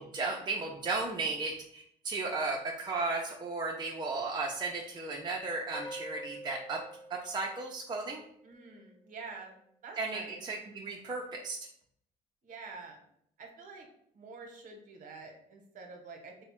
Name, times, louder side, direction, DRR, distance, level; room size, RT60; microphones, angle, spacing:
voice 1, 0.0-6.8 7.1-8.2 10.0-11.6, right 3 dB, 25° right, -2 dB, 0.5 m, -35 dB
sound 1, 5.7-8.3, equal, 30° left, 0.7 m, -46 dB
voice 2, 8.4-9.6 9.8-10.4 12.4-13.0 13.4-13.9 14.1-16.4, right 4 dB, 50° right, 2 dB, 0.9 m, -47 dB
3.4 x 2.1 x 4.3 m, 0.69 s
cardioid pair, 110°, 17 cm